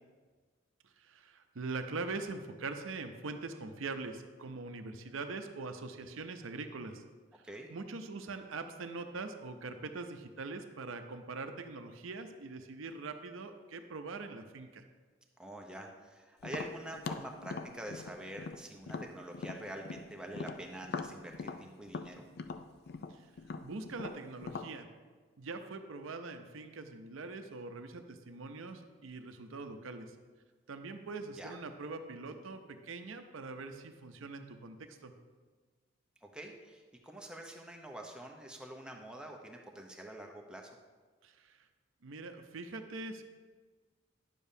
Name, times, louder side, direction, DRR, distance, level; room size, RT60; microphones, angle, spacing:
voice 1, 1.0-7.0 7.7-14.8 23.1-23.2 23.6-24.9 25.4-30.1 30.7-35.1 41.2-41.6 42.0-43.2, right 3 dB, 70° right, 7 dB, 0.6 m, -43 dB
voice 2, 15.4-22.3 31.4-31.5 36.2-40.7, right 1 dB, 5° right, 1 dB, 0.6 m, -46 dB
Tap, 16.4-20.1 20.3-24.7, left 4 dB, 50° left, 0.3 m, -41 dB
9.9 x 6.9 x 2.7 m, 1.4 s
head